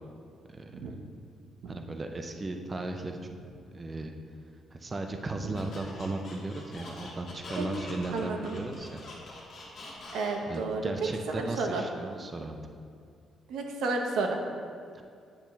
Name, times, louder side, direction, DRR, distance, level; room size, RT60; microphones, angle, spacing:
voice 1, 1.7-3.2 3.7-4.2 4.7-9.0 10.5-12.6 14.9-15.0, right 2 dB, 20° right, 4 dB, 0.4 m, -36 dB
Squeak, 5.5-10.6, left 2 dB, 45° left, 1.5 m, -45 dB
voice 2, 8.1-8.6 10.1-10.9 11.3-11.8 13.5-14.4, right 3 dB, 80° right, 3 dB, 0.8 m, -31 dB
8.7 x 5.8 x 3.1 m, 2.3 s
cardioid pair, 170°, 0 cm